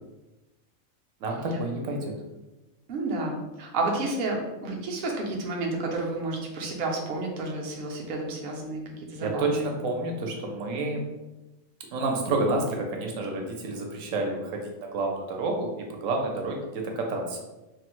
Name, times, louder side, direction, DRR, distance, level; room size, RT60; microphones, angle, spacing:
voice 1, 1.2-2.2 9.2-11.1 11.9-17.4, right 2 dB, 75° right, 2 dB, 1.0 m, -29 dB
voice 2, 2.9-9.7, right 2 dB, 60° right, 0 dB, 0.6 m, -31 dB
3.2 x 2.0 x 2.9 m, 1.0 s
omnidirectional pair, 1.4 m